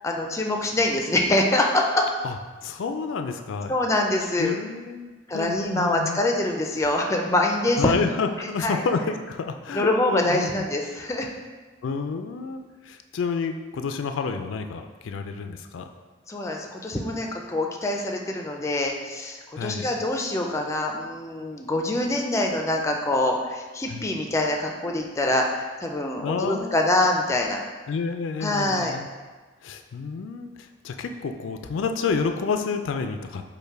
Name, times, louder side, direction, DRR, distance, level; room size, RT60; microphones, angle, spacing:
voice 1, 0.0-2.1 3.7-4.6 5.3-7.9 8.4-8.8 9.7-11.3 16.3-27.6 28.4-29.0, left 1 dB, 15° left, 2 dB, 0.4 m, -25 dB
voice 2, 2.6-3.8 4.4-6.2 7.8-10.7 11.8-12.6 12.9-15.8 19.6-19.9 23.9-24.1 26.2-26.8 27.9-29.1 29.6-30.5 30.8-33.5, left 5 dB, 85° left, 7 dB, 0.4 m, -29 dB
5.3 x 2.2 x 4.6 m, 1.3 s
head